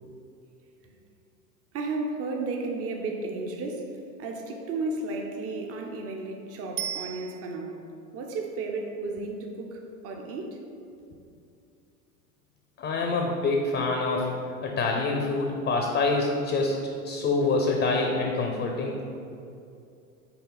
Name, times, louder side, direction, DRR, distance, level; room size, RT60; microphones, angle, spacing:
voice 1, 1.7-7.8 8.1-10.6, right 3 dB, 30° right, 2 dB, 0.8 m, -33 dB
Bicycle bell, 6.8-7.9 17.0-17.1, right 10 dB, 85° right, 0.6 m, -36 dB
voice 2, 12.8-14.3 14.6-19.0, left 3 dB, 25° left, 1 dB, 0.7 m, -26 dB
5.8 x 4.0 x 4.0 m, 2.5 s
hypercardioid pair, 90°, 47 cm